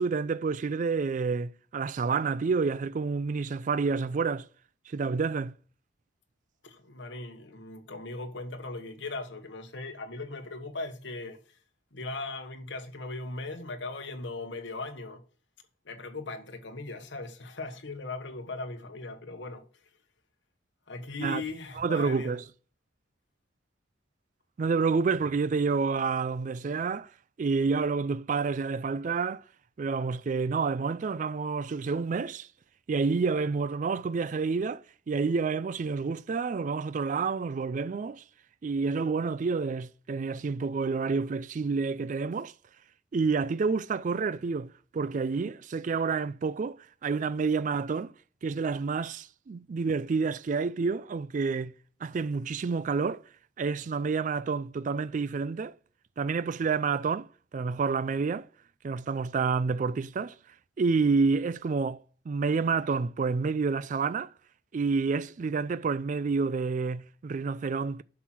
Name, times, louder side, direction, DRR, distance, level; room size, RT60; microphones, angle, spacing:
voice 1, 0.0-4.5 4.9-5.5 21.2-21.4 21.8-22.4 24.6-27.1 27.4-29.4 29.8-32.5 32.9-38.2 38.6-42.5 43.1-46.8 47.0-48.1 48.4-51.7 52.0-53.2 53.6-55.7 56.2-58.5 58.8-60.4 60.8-64.3 64.7-68.0, right 4 dB, 40° right, 0.3 m, -29 dB
voice 2, 6.6-11.6 11.9-15.2 15.8-19.6 20.9-22.3, left 2 dB, 65° left, 1.2 m, -38 dB
8.1 x 6.0 x 6.0 m
head